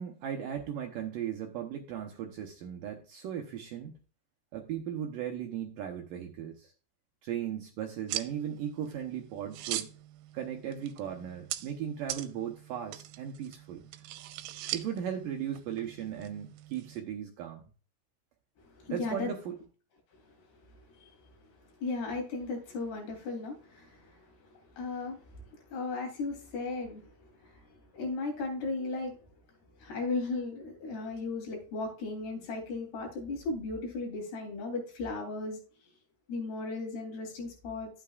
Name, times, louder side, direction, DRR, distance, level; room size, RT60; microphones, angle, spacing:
voice 1, 0.0-4.0 4.5-6.7 7.2-9.9 10.3-13.8 14.7-17.6 18.9-19.6, right 9 dB, 75° right, 2.1 m, -37 dB
sound 1, 8.1-17.0, right 14 dB, 90° right, 2.8 m, -42 dB
voice 2, 18.6-19.3 20.9-21.1 21.8-24.3 24.5-27.1 27.4-29.2 29.8-35.6 36.3-37.9, left 3 dB, 70° left, 5.2 m, -36 dB
12.0 x 8.7 x 2.4 m
omnidirectional pair, 4.9 m